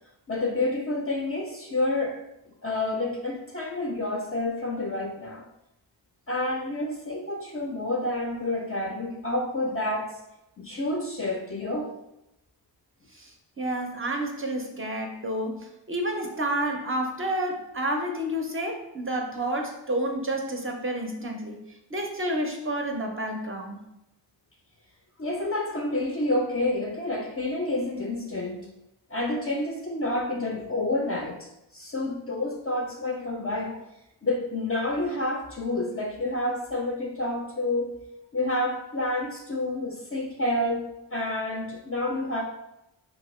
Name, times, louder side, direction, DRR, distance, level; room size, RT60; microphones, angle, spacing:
voice 1, 0.3-2.2 2.6-5.4 6.3-10.2 10.6-11.9 25.2-28.6 29.1-33.8 34.2-38.0 38.3-42.4, left 2 dB, 30° left, 1 dB, 0.4 m, -29 dB
voice 2, 13.1-23.8, right 1 dB, 30° right, 2 dB, 0.4 m, -30 dB
2.8 x 2.6 x 3.0 m, 0.87 s
cardioid pair, 60°, 47 cm